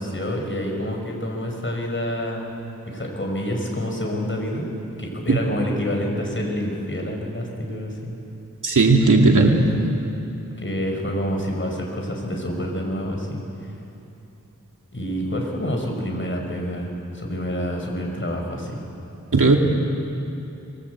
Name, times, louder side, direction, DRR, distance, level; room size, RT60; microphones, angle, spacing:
voice 1, 0.0-2.4 2.8-4.7 5.0-8.1 10.4-13.7 14.9-18.8, equal, 40° left, 1 dB, 5.8 m, -28 dB
voice 2, 8.6-9.8 19.3-19.6, right 3 dB, 80° right, 1 dB, 2.7 m, -16 dB
25.0 x 22.5 x 8.3 m, 2.8 s
wide cardioid pair, 70°, 31 cm